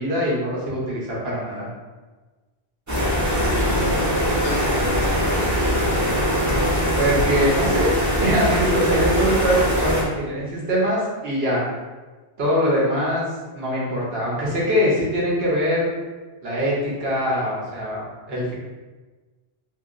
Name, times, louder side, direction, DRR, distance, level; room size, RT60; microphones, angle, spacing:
voice 1, 0.0-1.7 7.0-7.9 8.2-11.6 12.4-13.2 13.5-15.9 16.4-18.5, equal, 65° right, -5 dB, 1.1 m, -23 dB
sound 1, 2.9-10.0, equal, 20° right, 0.5 m, -21 dB
voice 2, 3.5-5.9, left 2 dB, 75° left, 0 dB, 0.9 m, -34 dB
3.0 x 2.9 x 2.5 m, 1.3 s
omnidirectional pair, 1.1 m